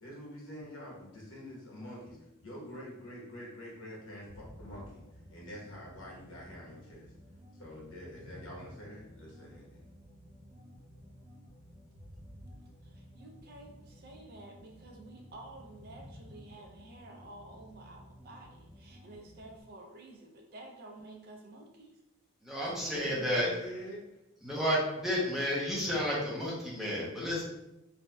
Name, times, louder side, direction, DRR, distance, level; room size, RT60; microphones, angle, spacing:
voice 1, 0.0-7.1 7.6-9.8 22.6-24.2, equal, 65° left, -4 dB, 1.0 m, -46 dB
sound 1, 4.3-19.6, equal, 20° right, 1.0 m, -53 dB
voice 2, 12.8-21.9, right 2 dB, 45° right, 2 dB, 0.4 m, -51 dB
voice 3, 22.4-23.5 24.4-27.4, equal, ahead, -6 dB, 0.6 m, -31 dB
3.1 x 2.6 x 2.2 m, 0.92 s
head